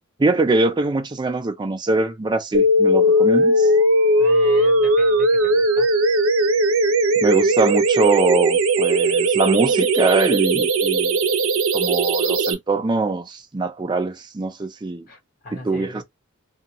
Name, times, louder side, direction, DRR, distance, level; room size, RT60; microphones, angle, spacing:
voice 1, 0.2-3.7 7.2-11.2 11.7-15.0 15.6-16.0, right 3 dB, 20° right, 0.4 m, -22 dB
sound 1, 2.5-12.5, right 1 dB, 75° right, 0.6 m, -18 dB
voice 2, 4.2-5.9 15.1-16.0, left 1 dB, 45° left, 1.3 m, -39 dB
2.6 x 2.2 x 2.9 m
head